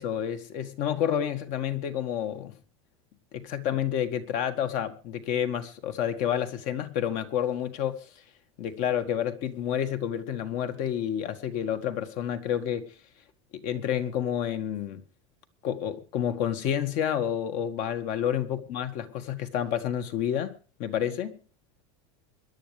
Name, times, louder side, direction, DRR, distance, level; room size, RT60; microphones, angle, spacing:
voice 1, 0.0-2.6 3.3-8.1 8.6-12.9 13.5-15.0 15.6-20.5 20.8-21.4, left 9 dB, 50° left, 1.8 m, -29 dB
24.5 x 11.0 x 3.4 m
supercardioid pair, 155°, 16 cm